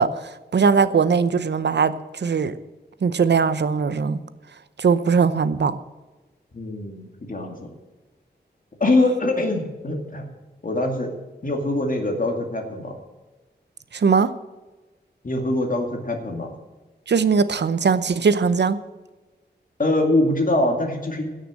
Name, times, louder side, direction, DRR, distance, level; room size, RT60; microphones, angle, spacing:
voice 1, 0.0-2.5 3.0-4.2 4.8-5.8 13.9-14.3 17.1-18.8, right 5 dB, 70° right, 14 dB, 0.8 m, -20 dB
voice 2, 6.5-7.7 8.8-10.3 10.6-11.1 11.4-12.9 15.2-16.5 19.8-21.3, left 2 dB, 50° left, 3 dB, 2.3 m, -23 dB
16.5 x 6.7 x 7.5 m, 1.2 s
wide cardioid pair, 95°, 18 cm